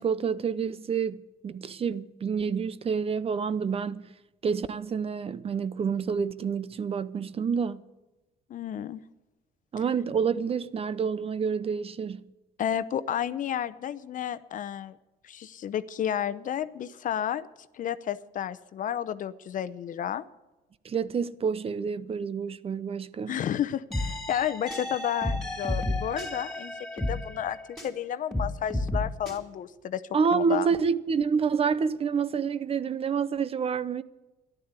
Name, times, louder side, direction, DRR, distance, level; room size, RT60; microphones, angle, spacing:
voice 1, 0.0-4.1 4.4-7.8 9.7-12.2 20.8-23.4 30.1-34.0, right 6 dB, 35° right, 0.7 m, -28 dB
voice 2, 8.5-9.0 12.6-15.0 15.2-17.5 17.7-20.2 23.3-30.0 30.3-30.7, left 10 dB, 50° left, 0.8 m, -31 dB
sound 1, 23.9-28.0 28.3-29.4, left 2 dB, 5° left, 3.6 m, -32 dB
13.5 x 11.5 x 8.2 m
cardioid pair, 110°, 17 cm